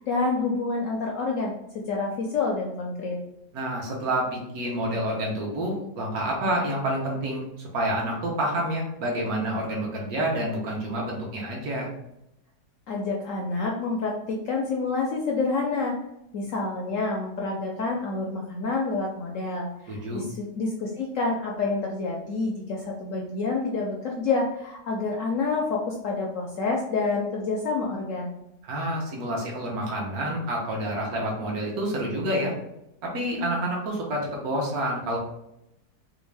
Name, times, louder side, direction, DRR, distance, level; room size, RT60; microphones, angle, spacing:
voice 1, 0.0-1.5 1.9-3.2 12.9-16.0 16.3-28.3, left 3 dB, 70° left, -1 dB, 0.8 m, -28 dB
voice 2, 3.5-11.9 19.9-20.2 28.6-32.5 33.0-35.2, right 1 dB, 60° right, -2 dB, 1.4 m, -28 dB
3.5 x 2.5 x 3.2 m, 0.83 s
omnidirectional pair, 1.8 m